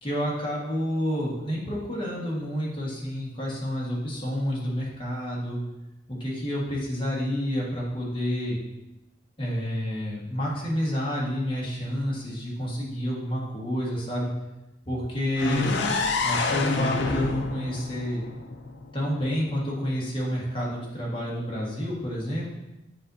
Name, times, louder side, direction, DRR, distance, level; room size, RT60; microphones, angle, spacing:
voice 1, 0.0-5.6 6.1-8.6 9.4-14.3 14.8-15.8 16.2-18.2 18.9-22.5, equal, 25° left, -5 dB, 1.5 m, -29 dB
sound 1, 15.4-19.2, left 3 dB, 65° left, 0.5 m, -28 dB
7.4 x 5.1 x 2.7 m, 0.99 s
head